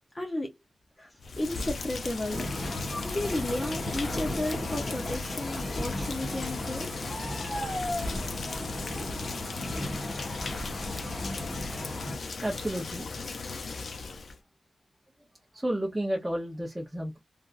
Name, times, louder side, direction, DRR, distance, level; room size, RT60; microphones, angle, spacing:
voice 1, 0.1-0.5 1.0-2.5 3.0-6.9, left 1 dB, 20° left, 0.7 m, -33 dB
Rain, 1.2-14.4, left 3 dB, 60° left, 0.6 m, -37 dB
sound 1, 2.3-12.2, left 1 dB, 35° left, 1.2 m, -35 dB
voice 2, 12.4-13.1 15.5-17.2, right 1 dB, 10° right, 0.8 m, -31 dB
3.3 x 2.5 x 2.5 m
wide cardioid pair, 140°, 0 cm